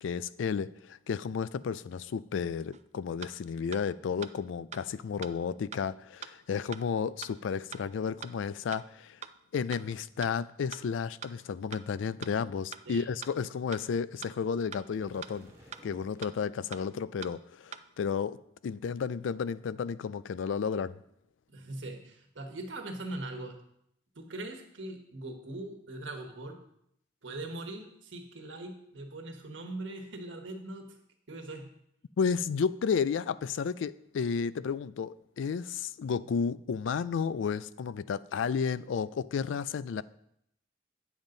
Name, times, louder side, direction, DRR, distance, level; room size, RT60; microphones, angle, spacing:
voice 1, 0.0-9.2 9.5-15.5 15.8-18.4 18.6-20.9 32.2-40.0, left 6 dB, 90° left, 0.3 m, -32 dB
sound 1, 2.7-2.8 3.2-3.3 3.7-3.8 4.2-4.3 4.7-4.8 5.2-5.3 5.7-5.8 6.2-6.3 6.7-6.8 7.2-7.3 7.7-7.8 8.2-8.3 8.7-8.8 9.2-9.3 9.7-9.8 10.2-10.3 10.7-10.8 11.2-11.3 11.7-11.8 12.2-12.3 12.7-12.8 13.2-13.3 13.7-13.8 14.2-14.3 14.7-14.8 15.2-15.3 15.7-15.8 16.2-16.3 16.7-16.8 17.2-17.3 17.7-17.8, right 8 dB, 35° right, 0.4 m, -42 dB
sound 2, 14.8-16.4, equal, 15° right, 1.4 m, -55 dB
voice 2, 21.5-23.6 24.1-26.6 27.2-30.9 31.3-31.7, right 2 dB, 90° right, 1.4 m, -41 dB
8.8 x 7.3 x 3.9 m
head